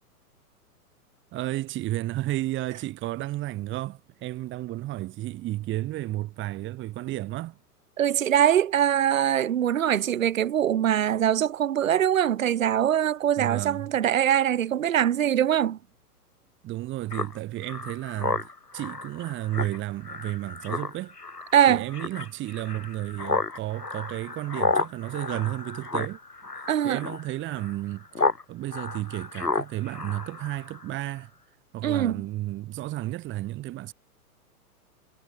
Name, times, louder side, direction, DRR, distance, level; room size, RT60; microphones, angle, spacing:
voice 1, 1.3-7.6 13.4-13.9 16.6-21.1 21.7-26.2 26.5-31.3 31.7-33.9, right 16 dB, 25° right, 3.4 m, -32 dB
voice 2, 8.0-15.8 21.5-21.9 26.7-27.0 31.8-32.2, right 10 dB, 55° right, 3.8 m, -23 dB
Speech synthesizer, 17.1-28.4 28.7-30.9, left 3 dB, 80° left, 6.3 m, -32 dB
figure-of-eight pair, 110°, 47 cm